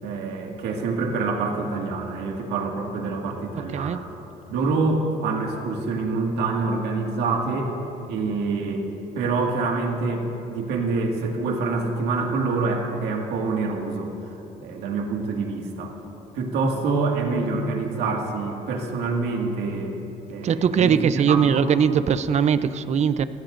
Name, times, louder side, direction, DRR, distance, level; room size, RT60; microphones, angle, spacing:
voice 1, 0.0-4.1 4.5-7.7 8.1-8.9 9.1-15.9 16.3-19.9 20.3-21.7, right 3 dB, 85° right, 1 dB, 2.0 m, -26 dB
voice 2, 20.4-23.3, right 7 dB, 40° right, 13 dB, 0.6 m, -20 dB
30.0 x 16.0 x 2.6 m, 3.0 s
cardioid pair, 110°, 17 cm